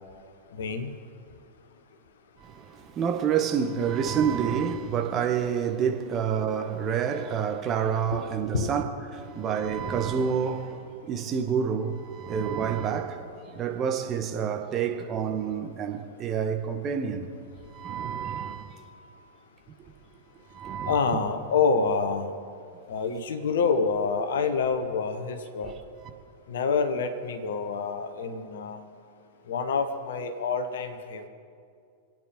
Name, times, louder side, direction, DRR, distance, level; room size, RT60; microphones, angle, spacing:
voice 1, 0.5-1.0 8.1-8.2 8.5-8.7 20.8-22.3 22.9-25.7 26.5-28.8 29.5-31.3, left 5 dB, 60° left, 1.3 m, -27 dB
voice 2, 2.4-8.9 9.1-17.3 17.7-18.9 20.5-21.1, right 7 dB, 30° right, 1.5 m, -28 dB
26.5 x 9.1 x 5.4 m
figure-of-eight pair, 90°, 0 cm